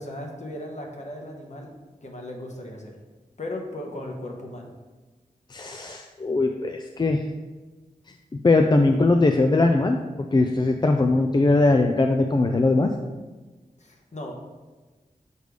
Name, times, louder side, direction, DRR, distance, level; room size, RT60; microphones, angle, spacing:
voice 1, 0.0-1.7 2.0-2.9 3.4-4.7 13.8-14.3, left 1 dB, 50° left, 1 dB, 1.1 m, -36 dB
voice 2, 5.5-7.2 8.4-10.0 10.3-12.9, left 2 dB, 30° left, 4 dB, 0.4 m, -20 dB
6.6 x 3.3 x 5.1 m, 1.3 s
wide cardioid pair, 80°, 15 cm